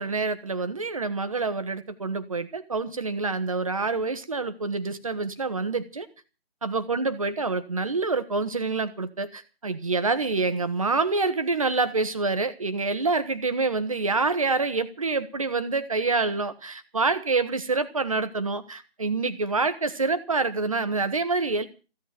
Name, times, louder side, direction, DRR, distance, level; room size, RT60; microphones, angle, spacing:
voice 1, 0.0-6.1 6.6-21.7, right 3 dB, 35° right, 1.5 m, -27 dB
16.0 x 9.5 x 9.0 m
figure-of-eight pair, 155°, 31 cm